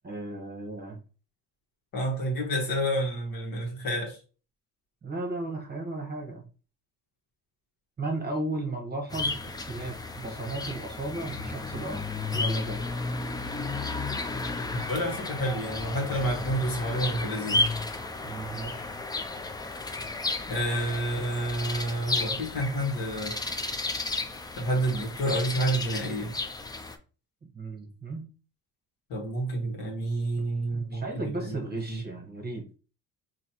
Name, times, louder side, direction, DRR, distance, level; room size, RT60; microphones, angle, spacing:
voice 1, 0.0-1.0 5.0-6.4 8.0-12.1 12.3-12.9 18.2-18.9 27.5-28.3 30.4-30.5 30.7-32.6, right 2 dB, 25° right, 1.1 m, -35 dB
voice 2, 1.9-4.2 14.9-17.6 20.5-23.4 24.6-26.3 29.1-32.0, right 1 dB, 65° left, 1.6 m, -29 dB
sound 1, 9.1-27.0, left 3 dB, 10° left, 0.4 m, -33 dB
4.0 x 2.9 x 2.9 m
cardioid pair, 90°, 37 cm